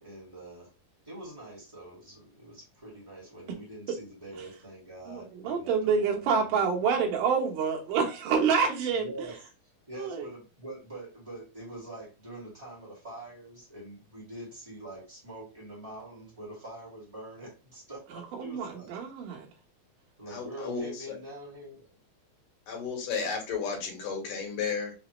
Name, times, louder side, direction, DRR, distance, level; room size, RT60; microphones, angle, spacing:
voice 1, 0.0-0.7 1.0-7.1 8.9-9.4 9.9-19.0 20.2-21.9, right 1 dB, 20° right, -5 dB, 1.0 m, -45 dB
voice 2, 5.1-9.1 9.9-10.3 18.4-19.5, right 6 dB, 75° right, 0 dB, 2.4 m, -27 dB
voice 3, 20.3-21.2 22.7-24.9, left 5 dB, 70° left, 1 dB, 2.6 m, -33 dB
5.8 x 2.0 x 3.0 m, 0.32 s
omnidirectional pair, 4.0 m